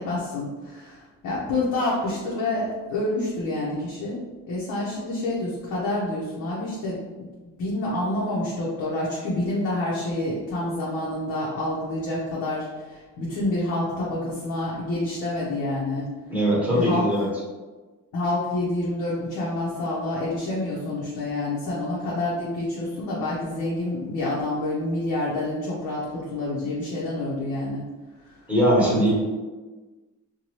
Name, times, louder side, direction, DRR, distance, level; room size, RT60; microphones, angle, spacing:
voice 1, 0.0-7.3 7.6-16.1 16.6-17.1 18.1-27.8 28.8-29.1, left 2 dB, 75° left, -7 dB, 0.8 m, -28 dB
voice 2, 16.3-17.3 28.5-29.1, equal, 5° right, -6 dB, 1.2 m, -20 dB
2.7 x 2.3 x 3.0 m, 1.3 s
cardioid pair, 90°, 30 cm